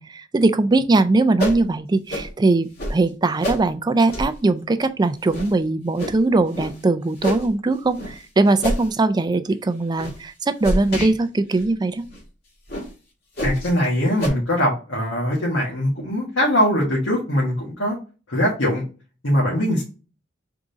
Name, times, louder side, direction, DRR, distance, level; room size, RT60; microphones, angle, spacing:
voice 1, 0.0-12.0, right 2 dB, 20° right, 0.4 m, -20 dB
sound 1, 1.4-1.6 2.1-2.3 2.8-2.9 3.4-3.6 4.1-4.3 4.8-4.9 5.3-5.5 6.0-6.1 6.5-6.7 7.2-7.5 7.9-8.1 8.6-8.9 9.3-9.5 10.0-10.1 10.6-11.1 11.6-11.7 12.1-12.2 12.7-12.9 13.4-13.7 14.2-14.3, equal, 55° left, 1.8 m, -27 dB
voice 2, 13.4-18.0 18.3-18.8 19.2-19.8, equal, 80° left, 1.5 m, -21 dB
3.8 x 3.6 x 3.9 m
head